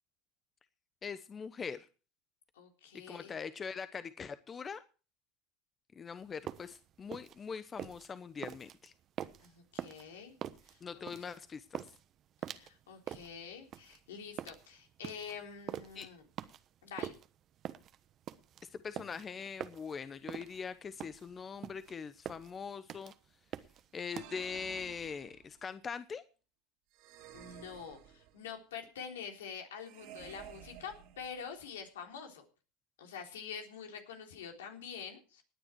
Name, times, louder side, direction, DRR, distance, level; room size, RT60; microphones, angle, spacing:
voice 1, 1.0-1.9 3.1-4.8 6.0-8.9 10.8-11.8 15.9-16.1 18.7-23.1 23.9-26.2, left 6 dB, 30° left, 13 dB, 0.9 m, -42 dB
voice 2, 2.6-3.4 9.4-10.3 10.7-11.0 12.4-16.2 16.8-17.1 27.3-32.4 33.0-35.4, left 6 dB, 85° left, 3 dB, 3.7 m, -46 dB
sound 1, 6.2-24.3, right 11 dB, 45° right, 1.1 m, -45 dB
sound 2, 23.9-25.6 26.9-28.6 29.8-31.7, right 11 dB, 65° right, 2.7 m, -53 dB
18.0 x 9.9 x 4.6 m, 0.36 s
hypercardioid pair, 90°, 0 cm